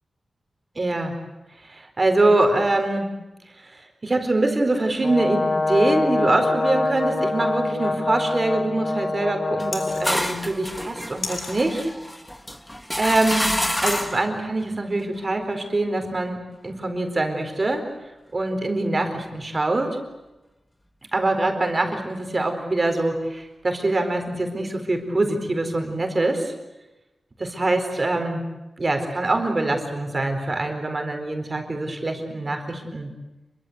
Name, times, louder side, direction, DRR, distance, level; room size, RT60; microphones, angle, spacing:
voice 1, 0.8-1.1 1.7-3.1 3.5-11.9 12.9-13.5 13.8-16.4 16.6-17.8 18.3-20.0 21.1-26.5 27.4-28.4 28.8-33.1, right 2 dB, 30° right, 5 dB, 4.3 m, -24 dB
Brass instrument, 5.0-10.2, left 2 dB, 55° left, 3.8 m, -25 dB
sound 1, 9.6-14.3, equal, 5° left, 1.8 m, -28 dB
sound 2, 9.7-10.1 11.2-11.5 13.8-14.0, left 5 dB, 80° left, 3.6 m, -32 dB
28.0 x 24.0 x 8.0 m, 1.0 s
wide cardioid pair, 160°, 0 cm